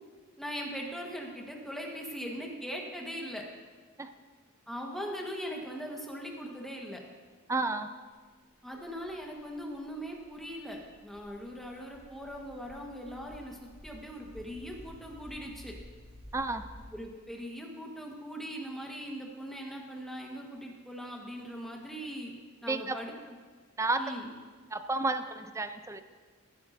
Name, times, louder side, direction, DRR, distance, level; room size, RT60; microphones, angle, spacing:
voice 1, 0.4-3.4 4.7-7.0 8.6-15.7 16.9-22.3 22.6-23.3 24.0-24.3, equal, ahead, -1 dB, 1.3 m, -40 dB
voice 2, 7.5-7.9 16.3-16.7 22.7-23.0 23.8-24.0 24.7-26.0, right 3 dB, 15° right, 9 dB, 0.4 m, -31 dB
sound 1, 8.5-16.8, equal, 35° left, 2.5 m, -53 dB
14.0 x 11.5 x 2.6 m, 1.5 s
head